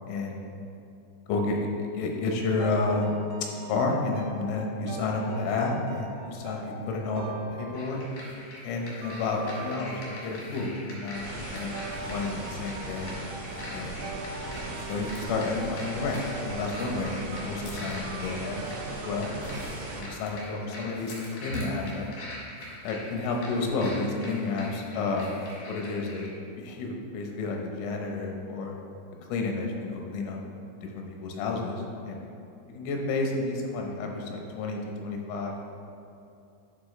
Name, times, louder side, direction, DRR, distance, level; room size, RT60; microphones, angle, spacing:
voice 1, 0.1-0.4 1.3-3.1 3.6-8.0 8.6-11.8 12.1-13.1 13.7-14.0 14.9-19.4 19.9-21.2 21.4-22.1 22.8-25.3 25.7-26.3 26.6-28.7 29.3-30.4 30.8-32.2 32.7-35.6, left 3 dB, 90° left, 1 dB, 3.5 m, -31 dB
sound 1, 2.6-8.4 9.0-10.7 11.7-19.1, right 2 dB, 85° right, 2.5 m, -43 dB
sound 2, 7.7-26.3, left 1 dB, 70° left, 1.9 m, -44 dB
sound 3, 11.1-20.0, right 2 dB, 70° right, 2.9 m, -38 dB
10.5 x 4.9 x 3.2 m, 2.7 s
omnidirectional pair, 5.7 m